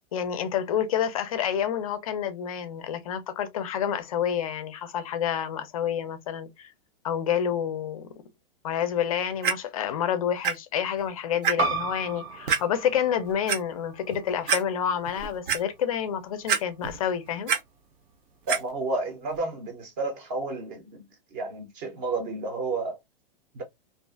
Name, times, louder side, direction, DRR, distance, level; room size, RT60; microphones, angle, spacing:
voice 1, 0.1-6.7 7.0-8.1 8.6-17.5, left 9 dB, 40° left, 0.4 m, -28 dB
Clock, 9.4-9.5 10.4-10.5 11.0-11.1 11.4-11.5 12.5-12.6 13.3-13.6 14.1-14.2 14.5-14.6 15.1-15.6 16.5-17.0 17.3-17.6 18.5-18.6 19.3-19.4, right 7 dB, 60° right, 0.6 m, -25 dB
sound 1, 11.6-16.7, right 3 dB, 85° right, 1.0 m, -35 dB
voice 2, 18.5-21.0 21.3-23.0 23.5-23.6, right 3 dB, 20° right, 0.5 m, -31 dB
2.4 x 2.3 x 2.3 m
hypercardioid pair, 170°, 29 cm